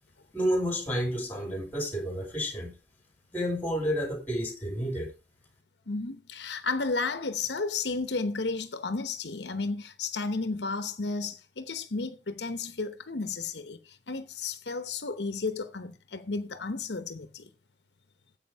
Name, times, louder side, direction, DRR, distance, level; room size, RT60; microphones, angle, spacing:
voice 1, 0.3-2.7 3.3-5.1, equal, 10° left, 3.8 m, -30 dB
voice 2, 5.9-17.5, left 3 dB, 80° left, 0.9 m, -33 dB
9.7 x 7.9 x 4.6 m
head